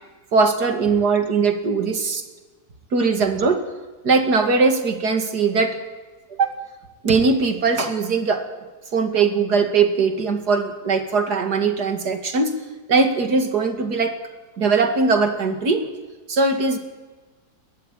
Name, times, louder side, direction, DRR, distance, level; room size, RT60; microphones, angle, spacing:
voice 1, 0.3-2.2 2.9-3.6 4.0-5.8 6.4-6.5 7.0-8.4 8.9-12.5 12.9-14.1 14.6-15.9 16.3-16.8, right 4 dB, 65° right, 6 dB, 2.8 m, -20 dB
22.0 x 17.0 x 9.1 m, 1.3 s
omnidirectional pair, 1.9 m